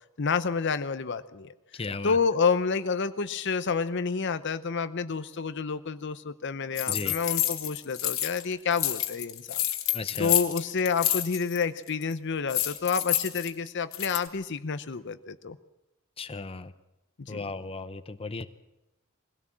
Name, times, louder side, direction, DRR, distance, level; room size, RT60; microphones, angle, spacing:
voice 1, 0.2-9.6 10.2-15.6 17.2-17.4, left 5 dB, 55° left, 12 dB, 0.7 m, -29 dB
voice 2, 1.7-2.2 6.9-7.1 9.9-10.3 16.2-16.7 17.3-18.5, left 3 dB, 25° left, 10 dB, 0.8 m, -35 dB
sound 1, 6.7-8.4 8.7-11.6 11.9-12.1 12.5-14.3, left 13 dB, 75° left, 1.9 m, -29 dB
22.0 x 16.5 x 7.4 m, 0.96 s
head